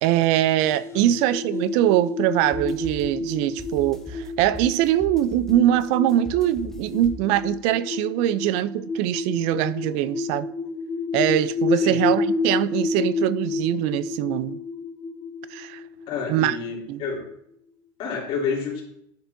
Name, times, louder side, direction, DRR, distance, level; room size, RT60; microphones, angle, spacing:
voice 1, 0.0-10.5 11.1-14.6 15.5-15.8 16.3-16.6 16.9-17.0, right 13 dB, 65° right, 0.4 m, -22 dB
sound 1, 0.6-16.9, left 3 dB, 20° left, 0.5 m, -30 dB
sound 2, 2.4-7.7, equal, 5° left, 1.0 m, -40 dB
voice 2, 16.1-17.3 18.0-18.8, left 5 dB, 55° left, 2.9 m, -29 dB
10.5 x 5.1 x 2.6 m
supercardioid pair, 120°, 12 cm